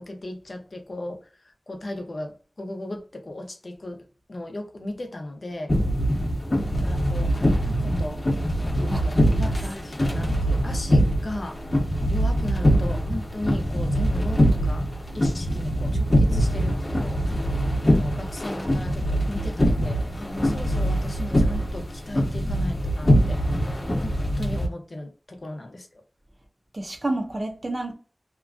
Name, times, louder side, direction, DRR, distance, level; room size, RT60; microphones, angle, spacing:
voice 1, 0.0-5.7 6.6-8.2 8.7-11.6 12.1-14.9 15.1-17.2 17.5-23.6 24.0-26.0, left 1 dB, 65° left, 0.6 m, -36 dB
sound 1, 5.7-24.7, equal, 45° left, 0.9 m, -23 dB
voice 2, 8.6-9.5 26.7-27.9, right 2 dB, 45° right, 0.7 m, -31 dB
2.9 x 2.4 x 2.3 m
wide cardioid pair, 70°, 0 cm